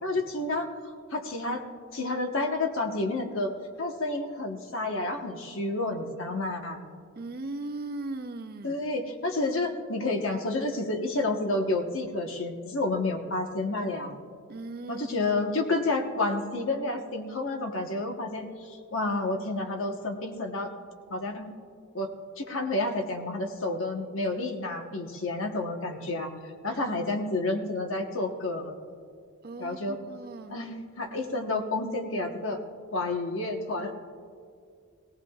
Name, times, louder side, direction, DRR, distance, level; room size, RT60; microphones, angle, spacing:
voice 1, 0.0-1.6 1.9-6.8 8.6-14.2 14.9-20.7 21.1-21.5 21.9-22.1 22.4-28.8 29.6-30.0 30.5-32.6 32.9-33.9, left 2 dB, 60° left, 4 dB, 1.1 m, -30 dB
voice 2, 7.2-8.8 14.5-15.5 26.7-27.2 29.4-30.6, right 2 dB, 45° right, 9 dB, 0.5 m, -39 dB
18.0 x 17.5 x 2.4 m, 2.1 s
head